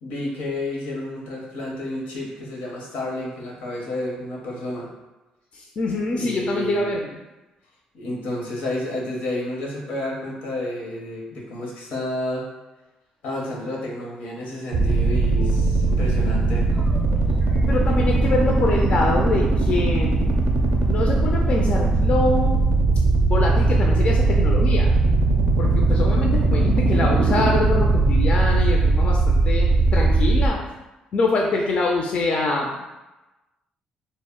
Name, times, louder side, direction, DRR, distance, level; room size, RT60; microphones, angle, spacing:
voice 1, 0.0-4.9 6.1-6.9 7.9-12.5 13.2-16.7, left 1 dB, 85° left, -2 dB, 0.7 m, -30 dB
voice 2, 5.5-7.1 15.4-15.5 17.7-20.2 20.9-22.6 23.3-24.9 25.6-30.7 31.1-32.9, left 3 dB, 50° left, -1 dB, 0.4 m, -25 dB
sound 1, 14.7-30.5, right 3 dB, 70° right, 0.4 m, -19 dB
sound 2, 16.7-21.4, right 2 dB, 15° right, 0.5 m, -39 dB
2.1 x 2.0 x 3.6 m, 1.0 s
cardioid pair, 85°, 3 cm